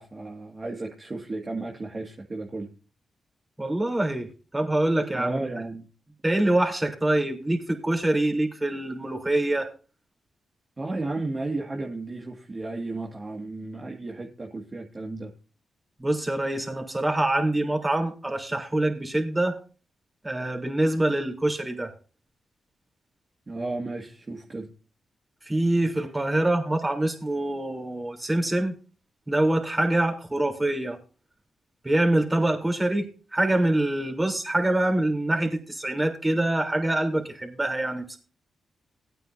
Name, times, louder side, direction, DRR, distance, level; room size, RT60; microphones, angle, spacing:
voice 1, 0.0-2.7 5.1-5.9 10.8-15.3 23.5-24.7, right 2 dB, 40° right, 0 dB, 2.0 m, -33 dB
voice 2, 3.6-4.3 4.5-5.5 6.2-9.7 16.0-19.6 20.2-21.9 25.5-28.7 29.3-31.0 31.8-38.2, right 1 dB, 20° right, 3 dB, 3.4 m, -25 dB
18.0 x 9.3 x 2.7 m, 0.35 s
supercardioid pair, 45°, 0 cm